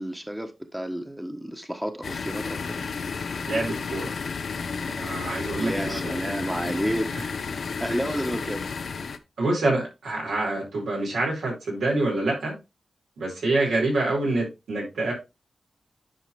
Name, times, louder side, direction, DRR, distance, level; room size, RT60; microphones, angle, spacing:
voice 1, 0.0-2.8 5.6-7.1 7.8-8.6, equal, 5° right, 1.2 m, -30 dB
sound 1, 2.0-9.2, left 5 dB, 75° left, 0.7 m, -32 dB
voice 2, 3.5-4.1 4.9-6.3 7.1-7.2 9.4-12.6 13.2-15.1, right 2 dB, 90° right, 5.1 m, -26 dB
10.0 x 4.9 x 3.4 m
cardioid pair, 50°, 0 cm